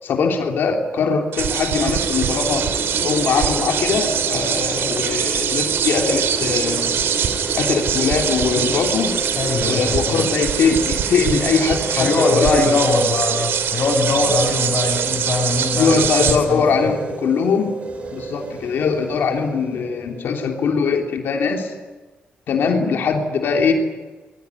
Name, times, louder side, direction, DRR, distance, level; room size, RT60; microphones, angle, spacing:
voice 1, 0.0-6.9 7.5-9.1 9.6-12.8 15.8-17.7 18.1-21.7 22.5-23.7, left 5 dB, 70° left, 3 dB, 3.2 m, -21 dB
sound 1, 1.3-16.4, right 8 dB, 85° right, 3.0 m, -23 dB
sound 2, 1.4-10.1, equal, 5° right, 6.8 m, -32 dB
sound 3, 1.7-20.8, right 3 dB, 35° right, 5.5 m, -33 dB
voice 2, 9.4-10.3 12.0-16.6, left 2 dB, 45° left, 5 dB, 6.1 m, -21 dB
24.5 x 22.0 x 9.7 m, 1.3 s
wide cardioid pair, 165°, 4 cm